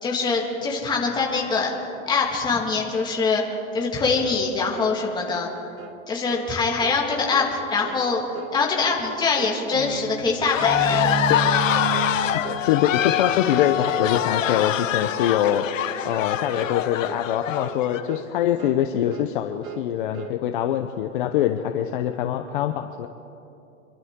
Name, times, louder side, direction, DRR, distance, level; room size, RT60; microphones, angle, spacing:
voice 1, 0.0-1.7 2.1-3.4 3.7-5.5 6.1-8.2 8.5-11.1, left 4 dB, 10° left, -2 dB, 1.9 m, -23 dB
sound 1, 4.2-4.5 4.7-5.0 5.3-5.5 5.8-6.0 6.3-6.5 6.8-7.0 7.3-7.5 7.8-8.1 8.3-8.6 8.8-9.1 9.4-9.6 9.9-10.1 10.4-10.6 10.9-11.1 11.4-11.7 11.9-12.1 12.4-12.7 12.9-13.2 13.5-13.7 14.0-14.2 14.5-14.7 15.0-15.2 15.5-15.7 16.0-16.3 16.5-16.8 17.1-17.3 17.6-17.8 18.1-18.3 18.6-18.8 19.1-19.3 19.6-19.9 20.1-20.4, right 8 dB, 90° right, 1.4 m, -39 dB
sound 2, 9.7-14.6, right 5 dB, 70° right, 3.7 m, -32 dB
sound 3, 10.5-18.0, left 10 dB, 75° left, 1.1 m, -24 dB
voice 2, 12.6-23.1, left 11 dB, 40° left, 6 dB, 0.7 m, -24 dB
26.5 x 12.0 x 3.7 m, 2.7 s
supercardioid pair, 160°, 39 cm